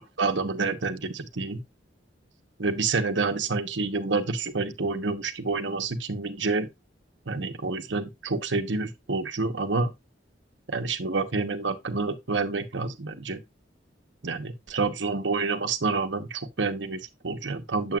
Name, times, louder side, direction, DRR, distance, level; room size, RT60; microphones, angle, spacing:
voice 1, 0.2-1.6 2.6-6.7 7.3-9.9 10.7-13.4 14.2-18.0, right 3 dB, 75° right, 1.1 m, -28 dB
8.0 x 7.6 x 2.4 m
head